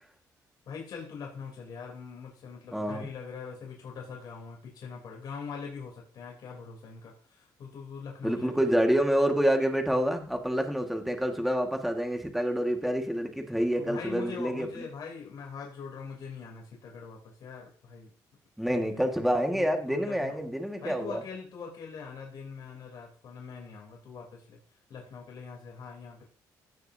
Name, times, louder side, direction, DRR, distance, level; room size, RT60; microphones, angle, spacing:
voice 1, 0.7-8.7 13.6-18.1 18.7-19.1 19.5-20.4 20.8-24.6 24.9-26.2, left 5 dB, 65° left, -1 dB, 3.2 m, -42 dB
voice 2, 2.7-3.1 8.2-14.7 18.6-21.2, equal, ahead, 4 dB, 1.6 m, -27 dB
16.5 x 6.5 x 2.7 m, 0.41 s
cardioid pair, 90°, 8 cm